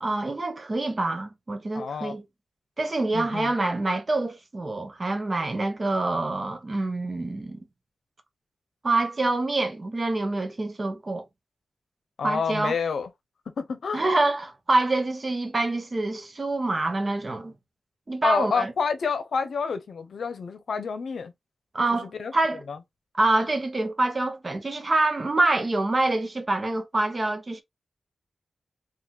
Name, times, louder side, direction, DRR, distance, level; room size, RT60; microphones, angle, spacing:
voice 1, 0.0-2.2 2.8-7.6 8.8-11.2 12.2-12.7 13.9-17.5 18.1-18.7 21.7-22.6 23.2-27.6, right 2 dB, 30° right, 0.9 m, -26 dB
voice 2, 1.7-2.2 3.1-3.5 12.2-13.1 13.5-14.0 18.2-21.3 21.9-22.3 22.7-22.8, left 5 dB, 75° left, 0.7 m, -28 dB
4.1 x 2.5 x 2.8 m
wide cardioid pair, 135°, 0 cm